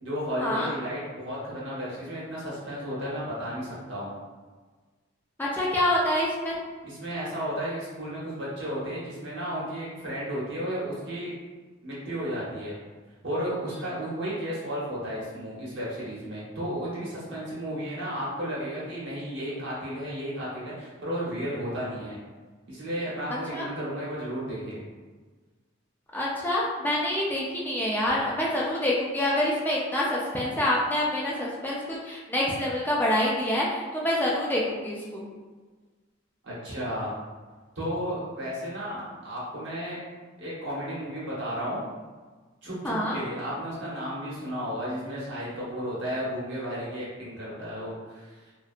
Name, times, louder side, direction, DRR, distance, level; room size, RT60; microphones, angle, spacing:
voice 1, 0.0-4.1 6.8-11.3 11.8-12.8 13.2-22.2 22.7-24.8 36.4-37.1 37.8-40.0 40.4-41.8 42.6-48.2, equal, 65° right, -7 dB, 1.0 m, -33 dB
voice 2, 5.4-6.6 23.3-23.7 26.1-35.2 42.8-43.2, left 1 dB, 10° left, -5 dB, 0.3 m, -26 dB
2.6 x 2.2 x 2.4 m, 1.4 s
head